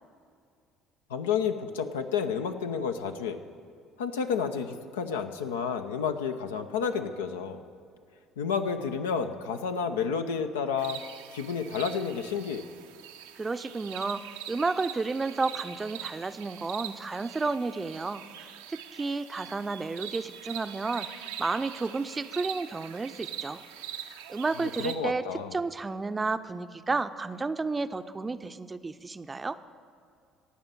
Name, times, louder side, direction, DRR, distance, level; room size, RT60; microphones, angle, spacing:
voice 1, 1.1-3.4 4.0-7.6 8.4-11.0 11.3-12.7 24.6-25.6, left 6 dB, 80° left, 7 dB, 0.6 m, -30 dB
sound 1, 10.8-25.0, right 10 dB, 80° right, 0.6 m, -42 dB
voice 2, 13.4-18.2 18.7-23.6 24.3-25.2 25.5-29.6, right 3 dB, 25° right, 12 dB, 0.5 m, -32 dB
17.0 x 5.7 x 7.5 m, 2.4 s
hypercardioid pair, 55°, 0 cm